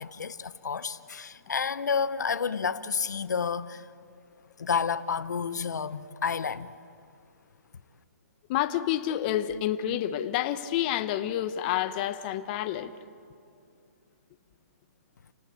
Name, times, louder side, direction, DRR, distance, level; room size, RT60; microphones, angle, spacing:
voice 1, 0.0-3.9 4.6-6.7, left 6 dB, 80° left, 0.9 m, -30 dB
voice 2, 8.5-13.0, left 11 dB, 30° left, 1.0 m, -29 dB
28.5 x 18.5 x 8.5 m
hypercardioid pair, 150°, 9 cm